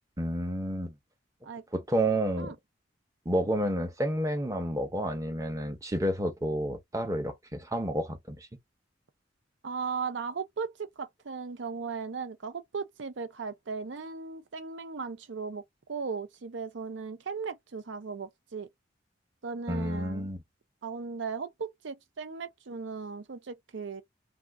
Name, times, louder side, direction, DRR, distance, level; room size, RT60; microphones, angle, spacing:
voice 1, 0.2-0.9 1.7-2.5 3.3-8.5 19.7-20.4, right 1 dB, 15° right, 0.7 m, -30 dB
voice 2, 9.6-15.6 15.9-18.7 19.4-20.3 20.8-24.0, right 5 dB, 75° right, 0.6 m, -37 dB
2.5 x 2.4 x 3.4 m
head